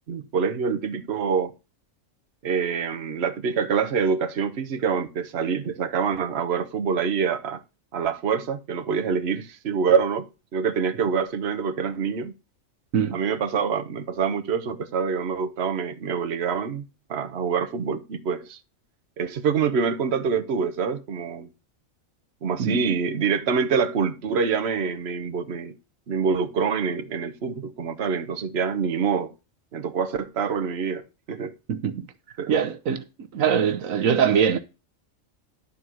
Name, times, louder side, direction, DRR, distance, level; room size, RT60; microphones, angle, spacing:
voice 1, 0.1-1.5 2.4-7.6 7.9-12.3 13.1-18.6 19.2-21.5 22.4-25.7 26.1-29.3 29.7-31.0 31.3-31.5 32.4-32.5, right 6 dB, 55° right, 1.2 m, -26 dB
voice 2, 31.7-32.1 32.5-33.0 33.3-34.6, right 7 dB, 85° right, 1.3 m, -22 dB
11.5 x 4.2 x 6.2 m
omnidirectional pair, 1.4 m